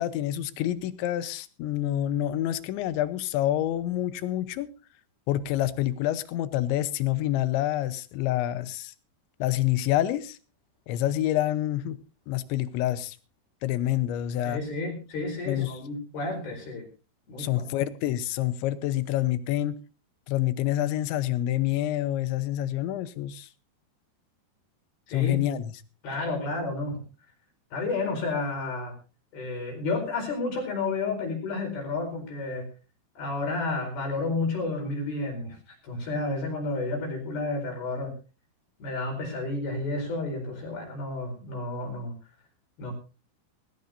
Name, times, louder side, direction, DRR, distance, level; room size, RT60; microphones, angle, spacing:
voice 1, 0.0-4.7 5.3-8.9 9.4-10.4 10.9-12.0 12.3-13.2 13.6-14.6 15.5-15.8 17.4-19.8 20.3-23.5 25.1-25.7, left 13 dB, 85° left, 14 dB, 3.2 m, -27 dB
voice 2, 14.4-16.9 17.3-17.7 25.1-25.4 26.0-27.0 27.7-28.9 29.3-32.7 33.2-35.6 35.8-38.1 38.8-42.1 42.8-42.9, left 3 dB, 55° left, 3 dB, 6.3 m, -31 dB
19.5 x 17.5 x 2.6 m, 0.32 s
omnidirectional pair, 5.2 m